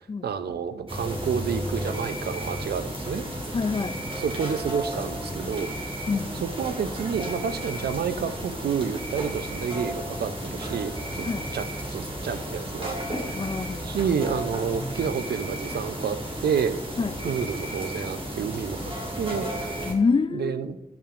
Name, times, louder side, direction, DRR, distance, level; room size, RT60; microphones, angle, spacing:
voice 1, 0.2-3.2 4.2-5.7 6.3-11.3 11.5-13.0 13.3-13.4 13.8-16.8 17.2-18.9 19.2-19.5 20.3-20.8, right 7 dB, 90° right, 11 dB, 0.5 m, -29 dB
sound 1, 0.9-19.9, equal, 35° right, 1.9 m, -33 dB
voice 2, 3.5-4.0 6.1-6.4 11.3-11.5 13.3-14.0 17.0-17.1 19.9-20.5, left 4 dB, 30° left, 12 dB, 0.4 m, -26 dB
10.5 x 5.6 x 2.5 m, 1.0 s
wide cardioid pair, 75°, 16 cm